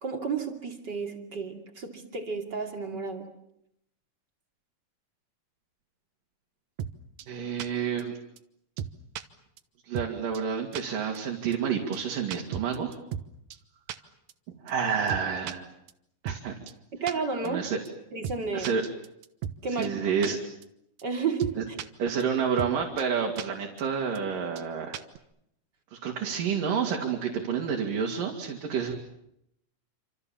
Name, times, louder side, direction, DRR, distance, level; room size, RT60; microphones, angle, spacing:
voice 1, 0.0-3.3 16.9-17.6 18.1-18.7 19.6-20.0 21.0-21.8, right 5 dB, 35° right, 4 dB, 3.0 m, -32 dB
sound 1, 6.8-6.9 7.2-7.3 7.6-7.7 8.0-8.1 8.4-8.5 8.8-9.2 9.6-9.7 9.9-10.1 10.3-10.4 10.7-10.8 11.1-11.2 11.5-11.6 11.9-12.0 12.3-13.3 13.5-13.6 13.9-14.0 14.3-14.4 14.7-14.8 15.1-15.5 15.9-16.0 16.2-16.4 16.7-16.8 17.1-17.2 17.4-17.5 17.9-18.0 18.2-18.4 18.6-19.6 19.8-19.9 20.2-20.3 20.6-20.7 21.0-21.1 21.4-21.9 22.2-22.3 22.6-22.7 23.0-23.1 23.4-23.5 23.8-23.9 24.1-24.2 24.6-24.7 24.9-25.2, right 9 dB, 65° right, 2.3 m, -35 dB
voice 2, 7.3-8.2 9.8-13.0 14.6-15.7 16.2-16.5 17.4-17.8 18.5-18.8 19.7-20.4 21.6-21.7 22.0-25.0 25.9-29.0, right 6 dB, 85° right, 1 dB, 4.2 m, -29 dB
28.5 x 26.5 x 7.3 m, 0.78 s
omnidirectional pair, 3.8 m